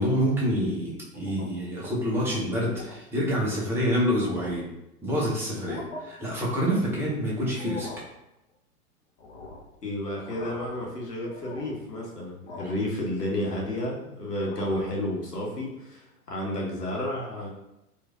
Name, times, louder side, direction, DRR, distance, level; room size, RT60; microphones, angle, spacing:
voice 1, 0.0-4.7 5.0-7.9, equal, 5° right, -5 dB, 0.6 m, -27 dB
sound 1, 1.1-1.7 2.2-2.4 2.8-3.0 3.6-3.7 4.0-4.7 5.5-6.0 7.4-8.1 9.2-9.7 10.1-10.8 11.3-11.8 12.5-12.9 13.3-13.9 14.3-15.0, left 2 dB, 50° left, 0.7 m, -43 dB
voice 2, 9.8-17.5, left 1 dB, 85° left, -3 dB, 1.1 m, -31 dB
4.6 x 2.5 x 2.3 m, 0.89 s
figure-of-eight pair, 105°, 46 cm